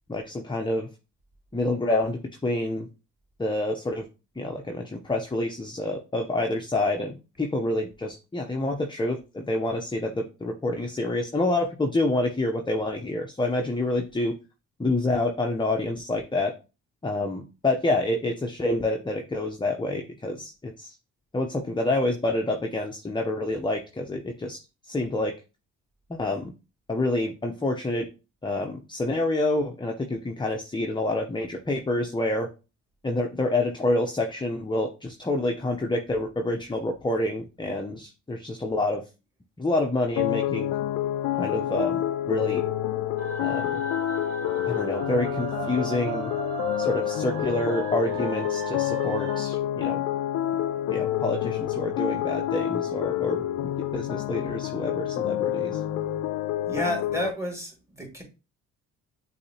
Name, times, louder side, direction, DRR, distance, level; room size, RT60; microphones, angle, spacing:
voice 1, 0.1-0.9 1.5-2.9 3.4-4.0 4.4-14.3 14.8-16.5 17.0-20.9 21.3-24.6 24.9-25.3 26.1-26.5 26.9-28.0 28.4-32.5 33.0-39.0 39.6-40.7 41.4-42.6 43.4-43.8 44.7-46.3 46.8-50.0 50.9-55.8, left 2 dB, 15° left, 3 dB, 0.8 m, -28 dB
sound 1, 40.2-57.3, left 12 dB, 60° left, 0.4 m, -28 dB
sound 2, 43.2-49.4, right 4 dB, 45° right, 1.5 m, -36 dB
voice 2, 56.7-58.2, left 1 dB, 10° right, 2 dB, 2.1 m, -30 dB
6.4 x 2.8 x 2.9 m, 0.30 s
hypercardioid pair, 55°, 34 cm